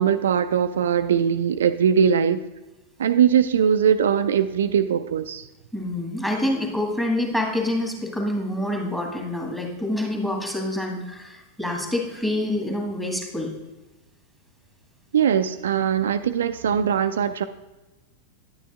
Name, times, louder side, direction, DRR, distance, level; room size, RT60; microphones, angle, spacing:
voice 1, 0.0-2.4 3.0-5.4 15.1-17.4, right 8 dB, 65° right, 10 dB, 0.3 m, -21 dB
voice 2, 5.7-13.5, left 1 dB, 5° left, 1 dB, 1.8 m, -27 dB
10.0 x 9.2 x 2.4 m, 1.1 s
figure-of-eight pair, 90°, 0 cm